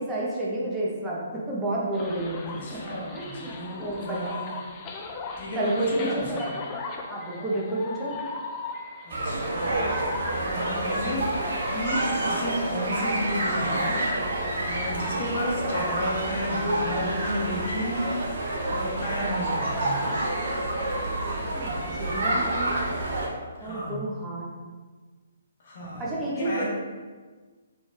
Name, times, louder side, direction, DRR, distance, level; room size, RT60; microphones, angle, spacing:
voice 1, 0.0-2.4 2.9-3.5 3.8-4.6 5.5-6.2 6.6-6.8 7.1-8.1 21.5-22.8 23.6-24.5 25.8-26.6, right 2 dB, 15° right, -5 dB, 1.0 m, -30 dB
sound 1, 1.9-12.6, left 4 dB, 25° left, 0.5 m, -39 dB
voice 2, 2.4-4.6 5.4-6.5 9.0-9.9 10.4-11.3 11.7-14.1 14.6-18.2 18.6-20.0 23.6-24.0 25.6-26.1 26.3-26.6, left 1 dB, 55° left, -4 dB, 1.2 m, -32 dB
sound 2, 9.1-23.3, right 1 dB, 60° right, 1.1 m, -28 dB
4.2 x 3.2 x 3.5 m, 1.4 s
figure-of-eight pair, 135°, 0 cm